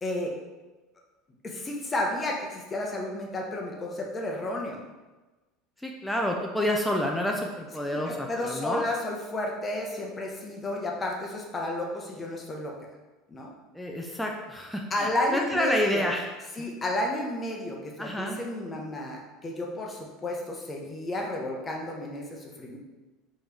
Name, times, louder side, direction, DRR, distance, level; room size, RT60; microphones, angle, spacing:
voice 1, 0.0-0.3 1.4-4.8 7.9-12.7 13.3-13.5 14.9-16.1 16.6-22.8, left 1 dB, 20° left, 0 dB, 0.8 m, -32 dB
voice 2, 5.8-8.8 13.7-16.3 16.6-16.7 18.0-18.4, left 1 dB, 5° left, 0 dB, 0.4 m, -29 dB
4.2 x 3.1 x 3.4 m, 1.2 s
supercardioid pair, 130°, 0 cm